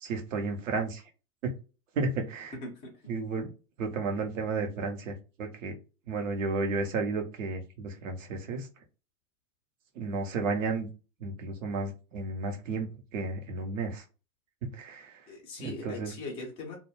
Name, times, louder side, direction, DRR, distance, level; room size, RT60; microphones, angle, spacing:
voice 1, 0.0-1.0 1.4-1.5 1.9-2.5 3.1-3.5 3.8-5.8 6.1-8.7 9.9-10.9 11.2-14.0 14.6-15.2 15.6-16.1, right 3 dB, 55° right, 0.9 m, -33 dB
voice 2, 2.6-3.1 15.3-16.8, left 2 dB, 15° left, 0.4 m, -40 dB
2.3 x 2.2 x 3.0 m
hypercardioid pair, 115°, 47 cm